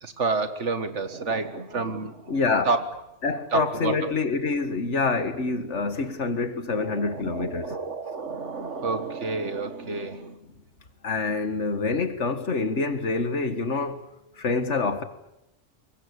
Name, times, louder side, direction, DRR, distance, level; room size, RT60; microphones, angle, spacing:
voice 1, 0.0-2.2 2.7-2.9 3.5-3.9 6.7-10.3, right 4 dB, 85° right, 2.1 m, -29 dB
voice 2, 2.3-2.7 3.2-7.8 11.0-14.1 14.4-15.0, left 4 dB, 80° left, 2.1 m, -26 dB
25.5 x 21.5 x 8.3 m
omnidirectional pair, 1.2 m